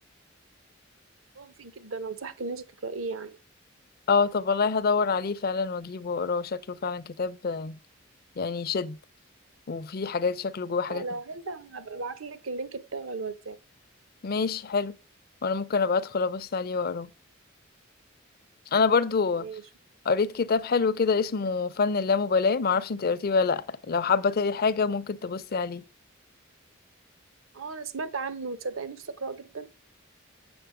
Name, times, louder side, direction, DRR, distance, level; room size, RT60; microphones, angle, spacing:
voice 1, 1.4-3.4 10.8-13.6 19.4-19.6 27.5-29.7, right 4 dB, 75° right, 0.8 m, -36 dB
voice 2, 4.1-7.8 8.4-9.0 9.7-11.1 14.2-14.9 15.4-17.1 18.7-19.5 20.1-25.8, left 5 dB, 50° left, 0.5 m, -26 dB
7.8 x 6.4 x 4.8 m
head